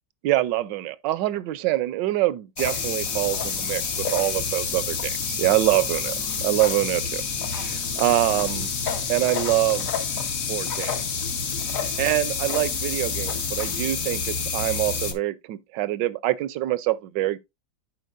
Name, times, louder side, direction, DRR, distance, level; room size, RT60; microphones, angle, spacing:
voice 1, 0.2-6.1 6.4-7.2 7.5-8.7 9.1-9.9 10.5-11.2 12.0-17.4, right 16 dB, 75° right, 1.2 m, -25 dB
sound 1, 2.6-15.1, left 5 dB, 50° left, 1.4 m, -28 dB
11.0 x 4.8 x 2.5 m
omnidirectional pair, 2.0 m